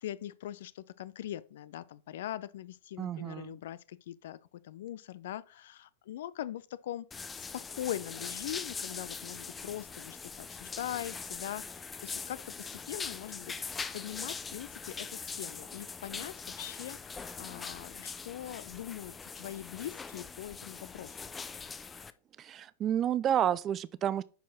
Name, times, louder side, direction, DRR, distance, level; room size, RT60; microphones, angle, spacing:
voice 1, 0.0-7.1 7.4-7.5 7.7-13.5 13.9-21.3, left 12 dB, 55° left, 0.5 m, -42 dB
voice 2, 3.0-3.6 22.4-24.2, right 10 dB, 30° right, 0.5 m, -30 dB
sound 1, 7.1-22.1, left 5 dB, 15° left, 0.6 m, -42 dB
10.0 x 4.6 x 4.1 m
figure-of-eight pair, 90°, 0 cm